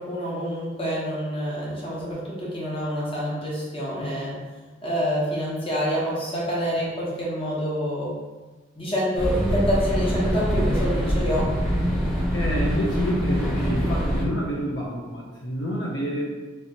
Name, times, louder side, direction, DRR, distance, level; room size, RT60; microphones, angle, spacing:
voice 1, 0.0-4.3 4.8-8.1 8.8-11.4, equal, 30° left, -6 dB, 0.9 m, -27 dB
sound 1, 9.2-14.2, equal, ahead, 0.7 m, -24 dB
voice 2, 12.3-16.2, equal, 65° left, -4 dB, 0.5 m, -28 dB
3.2 x 2.9 x 2.8 m, 1.2 s
head